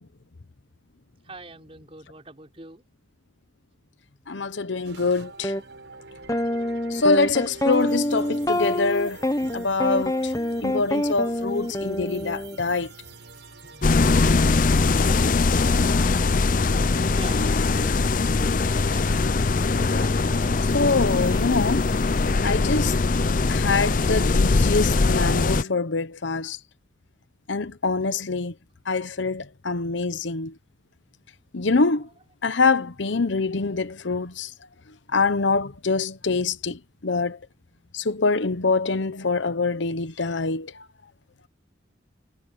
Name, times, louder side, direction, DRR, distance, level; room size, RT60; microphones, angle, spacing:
voice 1, 1.2-2.8 13.6-13.8 17.2-17.9 18.3-19.0, right 2 dB, 30° right, 4.6 m, -44 dB
voice 2, 4.3-5.5 6.9-9.2 9.5-10.3 10.6-12.9 19.8-20.1 20.7-21.9 22.4-22.9 23.5-26.6 27.5-28.5 28.9-30.5 31.5-32.1 32.4-34.5 35.1-37.4 37.9-40.8, left 3 dB, 75° left, 1.0 m, -25 dB
sound 1, 4.8-22.3, right 3 dB, 70° right, 5.9 m, -46 dB
sound 2, 5.4-5.6 6.3-12.6, left 1 dB, 20° left, 0.9 m, -26 dB
sound 3, 13.8-25.6, left 3 dB, 45° left, 0.5 m, -21 dB
head